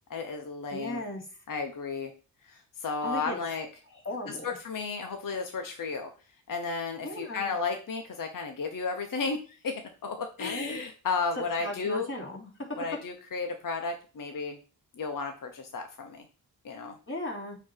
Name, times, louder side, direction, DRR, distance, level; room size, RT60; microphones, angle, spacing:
voice 1, 0.1-1.0 1.5-2.1 2.5-3.7 4.3-6.1 6.5-12.1 12.8-14.6 15.0-16.2 16.6-17.0, left 4 dB, 55° left, 5 dB, 1.1 m, -33 dB
voice 2, 0.7-1.3 3.0-3.4 4.0-4.5 7.0-7.5 10.4-10.8 11.3-12.9 17.1-17.6, left 1 dB, 30° left, -2 dB, 3.2 m, -36 dB
8.0 x 3.1 x 4.6 m, 0.36 s
supercardioid pair, 45°, 39 cm